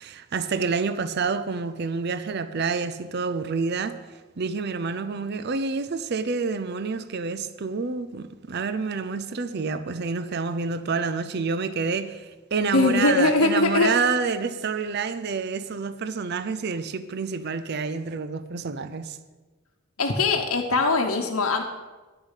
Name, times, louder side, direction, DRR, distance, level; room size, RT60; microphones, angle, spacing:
voice 1, 0.0-4.0 4.4-19.2, right 4 dB, 50° right, 0.5 m, -28 dB
voice 2, 12.7-13.9 20.0-21.6, left 3 dB, 75° left, 1.0 m, -21 dB
10.5 x 6.7 x 8.1 m
head